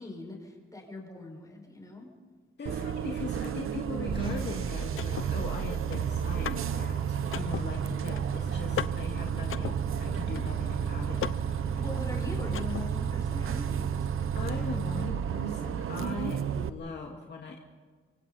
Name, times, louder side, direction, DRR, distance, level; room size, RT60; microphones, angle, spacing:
voice 1, 0.0-2.1 11.8-14.3, left 2 dB, 15° left, 0 dB, 6.0 m, -41 dB
voice 2, 2.6-11.8 12.1-12.5 13.4-13.5 14.3-17.6, left 4 dB, 55° left, 0 dB, 2.5 m, -40 dB
Bus, 2.7-16.7, right 8 dB, 80° right, 1.0 m, -31 dB
sound 1, 4.1-7.0, right 1 dB, 25° right, 7.4 m, -42 dB
Car / Mechanisms, 4.2-13.2, left 9 dB, 75° left, 0.8 m, -40 dB
28.0 x 24.5 x 4.3 m, 1.5 s
wide cardioid pair, 150°, 21 cm